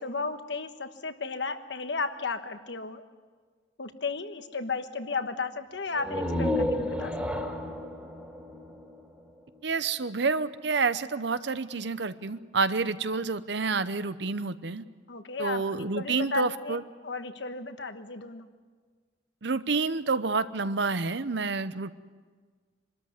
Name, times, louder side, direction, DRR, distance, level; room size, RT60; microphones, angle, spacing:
voice 1, 0.0-3.0 3.8-7.1 15.1-18.5, left 4 dB, 70° left, 9 dB, 1.3 m, -34 dB
sound 1, 5.9-9.6, left 1 dB, 10° right, 2.3 m, -31 dB
voice 2, 9.6-14.8 15.4-16.8 19.4-21.9, right 4 dB, 65° right, 13 dB, 0.8 m, -29 dB
24.5 x 13.5 x 9.5 m, 1.5 s
head